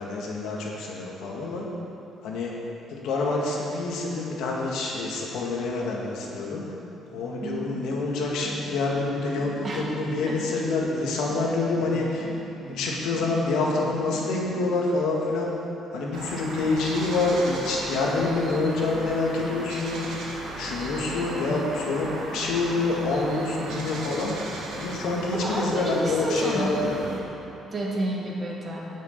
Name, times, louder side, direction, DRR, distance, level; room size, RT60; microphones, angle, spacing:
voice 1, 0.0-1.7 2.2-2.5 2.9-6.7 7.1-12.3 12.6-15.5 15.9-24.3 24.7-27.1, left 3 dB, 80° left, -2 dB, 2.0 m, -27 dB
sound 1, 7.1-14.8, right 2 dB, 45° right, 1.7 m, -41 dB
sound 2, 16.1-27.2, right 2 dB, 85° right, 1.8 m, -36 dB
voice 2, 25.3-26.0 26.2-26.8 27.7-28.9, right 1 dB, 30° right, -2 dB, 1.5 m, -30 dB
8.4 x 6.6 x 8.2 m, 2.9 s
cardioid pair, 155°, 0 cm